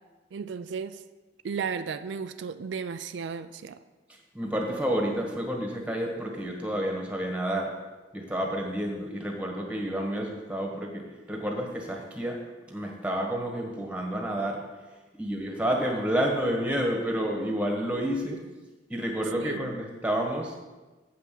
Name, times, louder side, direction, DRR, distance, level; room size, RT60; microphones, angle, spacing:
voice 1, 0.3-1.0 1.4-3.8 19.4-19.7, right 6 dB, 85° right, 11 dB, 0.4 m, -34 dB
voice 2, 4.1-7.7 8.1-12.4 12.7-14.6 15.2-18.4 18.9-20.6, equal, 10° right, 1 dB, 1.5 m, -30 dB
7.6 x 5.6 x 7.6 m, 1.2 s
head